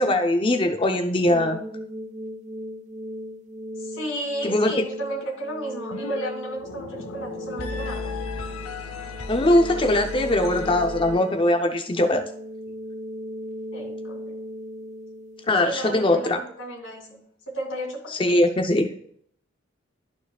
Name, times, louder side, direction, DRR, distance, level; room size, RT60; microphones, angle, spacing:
voice 1, 0.0-1.6 4.4-4.7 9.3-12.2 15.5-16.4 18.1-18.9, left 1 dB, 25° left, 5 dB, 0.5 m, -21 dB
sound 1, 1.3-16.3, equal, 35° right, 0.5 m, -37 dB
voice 2, 3.8-8.1 13.7-14.3 15.6-18.4, right 1 dB, 65° left, -1 dB, 2.6 m, -33 dB
sound 2, 5.9-6.3 6.5-11.5, left 3 dB, 90° left, 0.7 m, -35 dB
13.5 x 4.6 x 2.3 m, 0.66 s
head